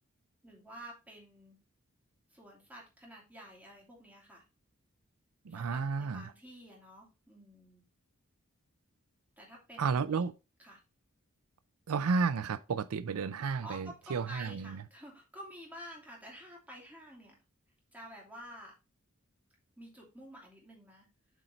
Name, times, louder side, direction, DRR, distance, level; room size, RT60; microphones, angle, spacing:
voice 1, 0.4-1.6 2.3-4.4 5.5-7.8 9.4-10.2 10.6-10.8 13.6-17.4 17.9-18.7 19.8-21.1, equal, 5° right, 2.7 m, -50 dB
voice 2, 5.5-6.2 9.8-10.3 11.9-14.8, right 5 dB, 90° right, 0.4 m, -32 dB
8.1 x 4.5 x 3.8 m
head